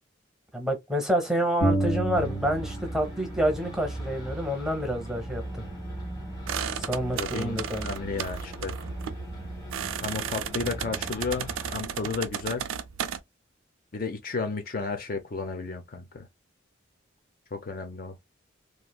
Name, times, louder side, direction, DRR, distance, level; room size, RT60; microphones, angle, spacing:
voice 1, 0.5-5.4 6.7-7.9, equal, ahead, 0.7 m, -28 dB
sound 1, 1.6-3.1 3.4-5.1, right 2 dB, 70° left, 1.5 m, -31 dB
sound 2, 2.1-11.7, right 1 dB, 20° left, 1.2 m, -39 dB
sound 3, 6.5-13.2, right 8 dB, 85° right, 0.4 m, -34 dB
voice 2, 7.1-8.8 10.0-12.7 13.9-16.3 17.5-18.2, left 4 dB, 45° left, 0.6 m, -33 dB
3.2 x 2.4 x 2.2 m
head